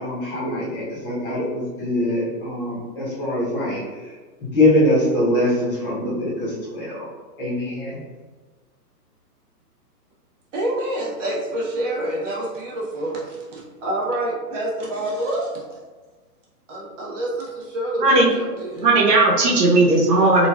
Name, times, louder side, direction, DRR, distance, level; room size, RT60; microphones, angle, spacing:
voice 1, 0.0-7.1 7.4-8.0, left 1 dB, 35° left, -6 dB, 0.8 m, -23 dB
voice 2, 10.5-15.5 16.7-18.9, right 1 dB, 50° right, -4 dB, 0.9 m, -27 dB
voice 3, 18.8-20.5, right 2 dB, 80° right, -3 dB, 1.0 m, -16 dB
3.0 x 2.4 x 2.3 m, 1.3 s
hypercardioid pair, 160°, 48 cm